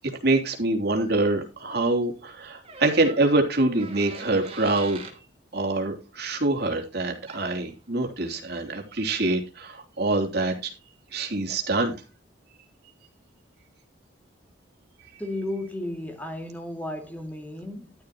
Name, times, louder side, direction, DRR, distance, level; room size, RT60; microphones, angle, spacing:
voice 1, 0.2-5.0 5.5-10.7 11.1-12.0, right 2 dB, 55° right, 3.1 m, -25 dB
sound 1, 2.6-5.2 7.3-7.5, right 4 dB, 30° right, 3.1 m, -42 dB
voice 2, 15.2-17.9, left 1 dB, 10° left, 2.5 m, -34 dB
12.5 x 12.0 x 3.0 m
head